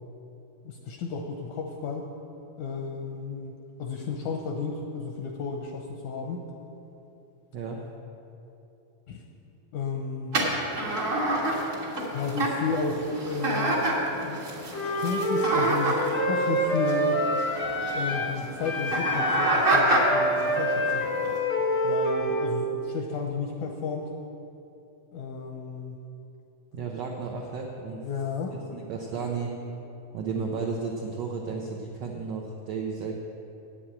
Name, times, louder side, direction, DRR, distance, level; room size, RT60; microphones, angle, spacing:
voice 1, 0.6-2.1 2.6-3.5 3.8-6.4 9.1-9.2 9.7-10.5 12.1-14.4 15.0-17.2 17.9-21.1 21.8-24.1 25.1-26.0 28.0-28.6 30.4-30.5, left 4 dB, 80° left, 1 dB, 1.7 m, -33 dB
sound 1, 10.3-21.4, right 2 dB, 60° right, 0.8 m, -28 dB
Wind instrument woodwind instrument, 14.7-18.4 18.6-22.5, equal, 60° left, 1.0 m, -27 dB
voice 2, 26.7-28.1 28.7-29.5 30.1-33.1, right 5 dB, 85° right, -1 dB, 1.4 m, -33 dB
8.5 x 7.8 x 8.6 m, 2.9 s
omnidirectional pair, 4.2 m